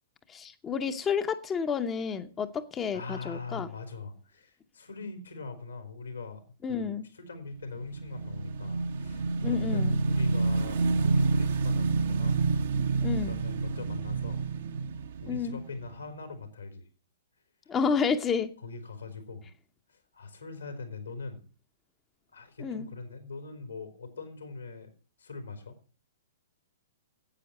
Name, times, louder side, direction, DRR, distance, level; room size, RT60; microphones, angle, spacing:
voice 1, 0.3-3.7 6.6-7.1 9.4-10.0 13.0-13.4 15.3-15.6 17.7-18.5 22.6-22.9, left 6 dB, 20° left, 8 dB, 0.8 m, -30 dB
voice 2, 2.9-6.4 6.7-12.5 13.2-14.5 15.2-16.8 18.6-19.5 19.9-21.4 22.3-24.9 25.2-25.8, left 4 dB, 80° left, 6 dB, 3.7 m, -42 dB
Motorcycle / Engine, 7.7-16.3, right 3 dB, 60° right, 1.0 m, -28 dB
10.0 x 8.5 x 8.0 m, 0.40 s
figure-of-eight pair, 115°, 0 cm